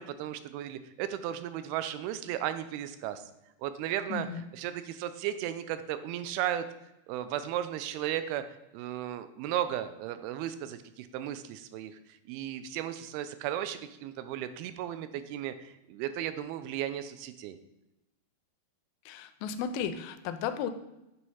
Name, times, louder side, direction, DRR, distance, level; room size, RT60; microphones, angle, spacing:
voice 1, 0.0-3.2 3.6-4.3 4.5-6.7 7.1-8.4 8.7-11.9 12.3-17.6, right 11 dB, 85° right, 11 dB, 2.4 m, -35 dB
voice 2, 4.1-4.5 19.1-20.7, left 7 dB, 80° left, 9 dB, 2.2 m, -34 dB
8.6 x 3.1 x 5.5 m, 0.92 s
omnidirectional pair, 4.5 m